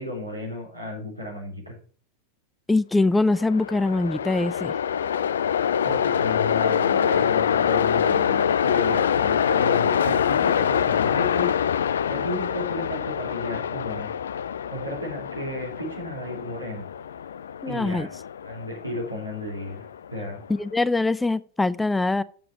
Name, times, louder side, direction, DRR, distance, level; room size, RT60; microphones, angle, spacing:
voice 1, 0.0-1.7 5.8-11.5 12.1-14.1 14.7-16.9 17.7-18.1 18.4-19.8 20.1-20.4, left 1 dB, 90° right, 4.1 m, -33 dB
voice 2, 2.7-4.7 17.6-18.1 20.5-22.2, left 2 dB, 5° left, 0.4 m, -23 dB
Train, 3.2-20.4, left 8 dB, 65° left, 0.4 m, -25 dB
7.8 x 6.8 x 8.2 m
figure-of-eight pair, 90°, 0 cm